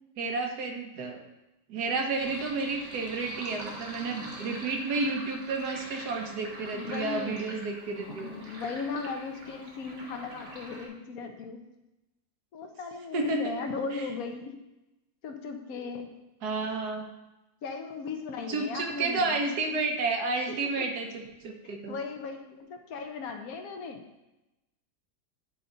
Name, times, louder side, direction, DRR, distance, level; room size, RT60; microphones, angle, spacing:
voice 1, 0.2-1.2 1.7-8.3 13.1-13.5 13.9-14.0 16.4-17.1 18.5-22.0, right 3 dB, 75° right, 2 dB, 1.5 m, -31 dB
Sink (filling or washing), 2.2-10.9, right 1 dB, 50° right, 1.4 m, -44 dB
voice 2, 6.7-7.4 8.0-11.6 12.5-14.5 15.2-16.1 17.6-19.4 20.6-20.9 21.6-24.0, left 4 dB, 65° left, 5 dB, 1.2 m, -37 dB
9.4 x 4.1 x 3.8 m, 0.96 s
omnidirectional pair, 1.7 m